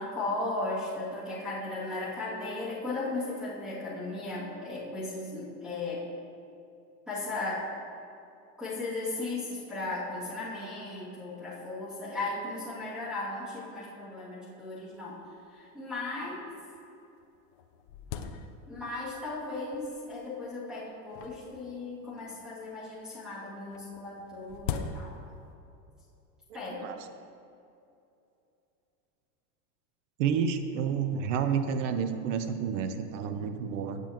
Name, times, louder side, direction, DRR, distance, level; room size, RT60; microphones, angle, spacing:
voice 1, 0.0-6.1 7.1-7.6 8.6-15.2 15.5-16.4 18.7-25.2 26.5-26.9, left 2 dB, ahead, -11 dB, 2.4 m, -36 dB
sound 1, 14.9-15.0 15.2-15.3 16.0-16.1 16.8-16.9 17.2-19.0 19.7-20.2 21.1-22.4 23.7-25.5, left 7 dB, 35° left, 0.4 m, -40 dB
voice 2, 30.2-34.0, right 7 dB, 50° right, 8 dB, 0.8 m, -30 dB
18.0 x 8.2 x 3.0 m, 2.7 s
supercardioid pair, 170°, 47 cm